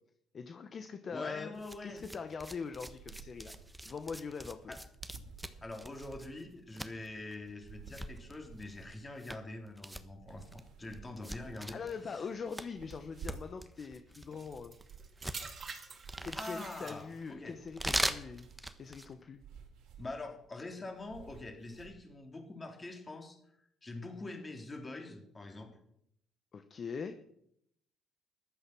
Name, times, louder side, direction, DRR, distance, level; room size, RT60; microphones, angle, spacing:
voice 1, 0.3-1.5 1.8-3.5 3.8-4.7 11.7-14.7 16.2-18.5 18.8-19.4 26.5-27.2, left 5 dB, 40° left, 8 dB, 1.1 m, -42 dB
voice 2, 1.1-2.0 4.7-4.8 5.6-11.8 12.1-12.3 16.3-17.6 20.0-23.4 23.8-25.7, left 2 dB, 25° left, 3 dB, 3.6 m, -44 dB
sound 1, 1.5-19.2, right 1 dB, 5° right, 1.1 m, -42 dB
sound 2, 2.9-21.9, right 6 dB, 80° right, 3.1 m, -55 dB
sound 3, 14.3-17.4 18.2-18.5, right 5 dB, 40° right, 2.3 m, -47 dB
14.5 x 11.5 x 6.1 m, 0.74 s
cardioid pair, 105°, 0 cm